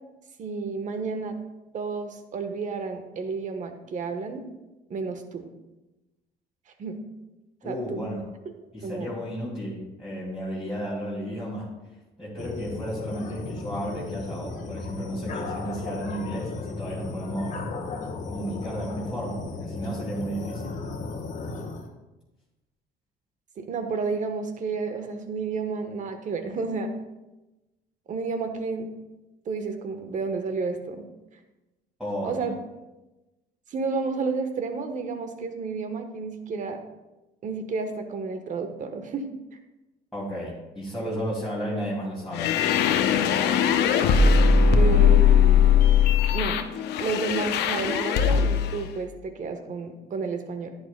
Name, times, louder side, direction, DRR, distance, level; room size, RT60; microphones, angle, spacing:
voice 1, 0.4-1.4 1.7-4.4 4.9-5.5 6.8-7.0 7.6-8.0 8.4-8.5 8.8-9.2 23.6-26.9 28.1-28.9 29.4-31.0 32.2-32.5 33.7-36.8 37.4-39.2 44.7-45.7 46.3-46.6 47.0-50.7, right 4 dB, 50° right, 7 dB, 1.1 m, -31 dB
voice 2, 7.6-8.2 8.7-11.7 12.2-17.6 18.3-20.7 32.0-32.5 40.1-42.5, equal, ahead, -8 dB, 2.4 m, -33 dB
sound 1, 12.4-21.9, left 3 dB, 45° left, 1.3 m, -35 dB
sound 2, 42.3-48.8, left 7 dB, 80° left, 0.7 m, -20 dB
11.0 x 9.8 x 2.2 m, 1.0 s
cardioid pair, 110°, 17 cm